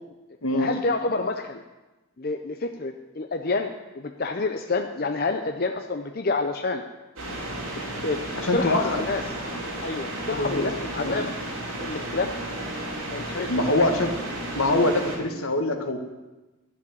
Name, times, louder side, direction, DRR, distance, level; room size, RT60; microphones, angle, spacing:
voice 1, 0.6-1.6 2.2-6.8 8.0-8.2 8.5-9.2 9.8-11.3 11.8-12.3 13.1-13.8, left 3 dB, 45° left, 5 dB, 0.6 m, -28 dB
sound 1, 7.2-15.2, right 1 dB, 70° right, 3.9 m, -33 dB
voice 2, 8.3-9.0 10.3-10.7 11.0-11.1 13.5-14.1 14.5-16.0, left 2 dB, 75° left, 5 dB, 1.6 m, -24 dB
12.5 x 7.3 x 9.8 m, 1.1 s
head